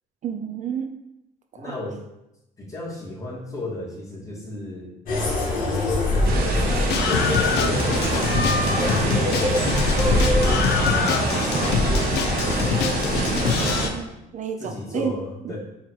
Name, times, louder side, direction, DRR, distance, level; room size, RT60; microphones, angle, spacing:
voice 1, 0.2-0.9 1.5-1.7 13.5-15.1 15.4-15.5, right 7 dB, 45° right, 5 dB, 0.7 m, -31 dB
voice 2, 1.5-2.0 2.6-4.9 6.1-8.1 8.7-9.8 10.2-12.8 14.6-15.6, left 1 dB, 20° left, -5 dB, 2.6 m, -35 dB
sound 1, 5.1-13.9, left 2 dB, 55° left, 2.1 m, -24 dB
sound 2, 6.2-13.9, right 3 dB, 65° right, 1.4 m, -26 dB
Screaming, 6.9-13.9, left 7 dB, 75° left, 0.7 m, -26 dB
8.0 x 3.3 x 5.0 m, 0.89 s
cardioid pair, 110°, 17 cm